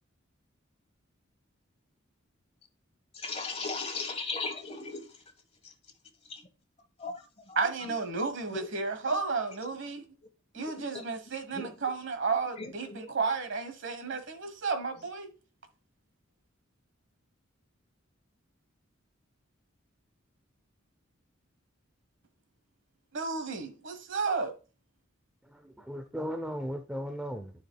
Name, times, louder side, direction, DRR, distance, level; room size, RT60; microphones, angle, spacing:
voice 1, 3.1-5.1 6.3-6.4 7.0-7.1 7.5-7.6 8.5-8.7 10.6-11.0 11.5-11.7 12.6-13.1, left 4 dB, 30° left, 1.3 m, -37 dB
voice 2, 7.5-10.0 10.5-15.3 23.1-24.5, right 4 dB, 65° right, 1.2 m, -32 dB
voice 3, 25.5-27.5, equal, 5° right, 0.5 m, -36 dB
12.0 x 4.9 x 2.2 m
head